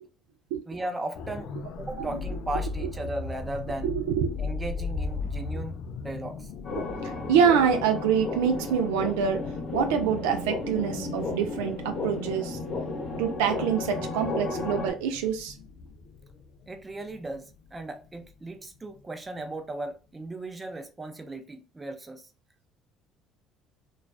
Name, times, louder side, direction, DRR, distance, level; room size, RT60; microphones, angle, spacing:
voice 1, 0.7-1.5 1.8-3.9 4.4-6.5 16.7-17.5 17.7-22.3, right 2 dB, 20° right, 0.6 m, -36 dB
sound 1, 1.1-19.0 19.4-19.6, left 4 dB, 70° left, 0.4 m, -39 dB
voice 2, 3.8-4.4 6.8-6.9 7.3-9.5 9.7-12.6 13.2-15.5, right 7 dB, 90° right, 0.3 m, -25 dB
sound 2, 6.6-14.9, left 3 dB, 55° left, 0.9 m, -33 dB
2.3 x 2.3 x 2.3 m
supercardioid pair, 80°, 0 cm